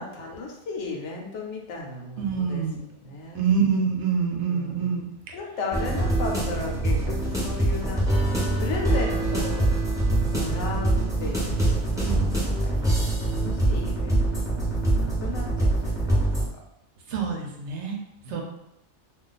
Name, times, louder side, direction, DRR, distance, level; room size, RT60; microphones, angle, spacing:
voice 1, 0.0-2.6 3.0-3.5 4.5-4.9 5.3-12.0 12.5-16.1 18.3-18.4, left 3 dB, 75° left, 0 dB, 1.0 m, -35 dB
voice 2, 2.2-2.8 3.3-5.3 12.0-12.4 17.1-18.0 18.2-18.4, right 6 dB, 75° right, 1 dB, 0.9 m, -26 dB
sound 1, 5.7-16.5, right 2 dB, 5° right, 0.7 m, -24 dB
2.4 x 2.4 x 3.9 m, 0.84 s
omnidirectional pair, 1.2 m